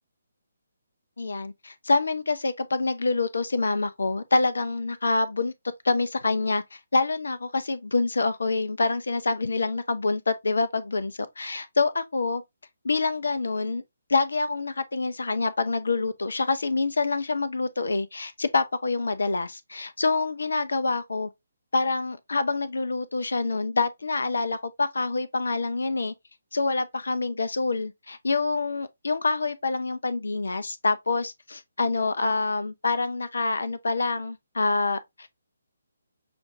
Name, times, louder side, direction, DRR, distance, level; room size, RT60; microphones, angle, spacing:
voice 1, 1.2-5.5 5.8-12.4 12.8-13.8 14.1-21.3 21.7-26.1 26.5-35.3, left 3 dB, 65° left, 0.6 m, -26 dB
6.0 x 2.6 x 2.6 m
figure-of-eight pair, 140°, 0 cm